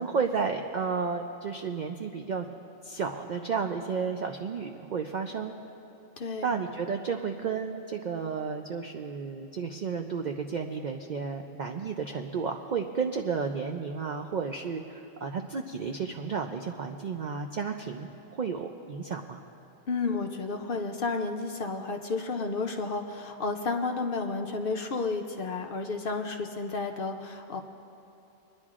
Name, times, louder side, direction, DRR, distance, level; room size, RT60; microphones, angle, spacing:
voice 1, 0.0-2.5 2.8-5.5 6.4-18.1 18.4-19.4, right 5 dB, 75° right, 4 dB, 0.4 m, -32 dB
voice 2, 6.2-6.6 19.9-27.6, left 4 dB, 55° left, 4 dB, 0.6 m, -32 dB
28.0 x 10.5 x 2.4 m, 3.0 s
omnidirectional pair, 1.4 m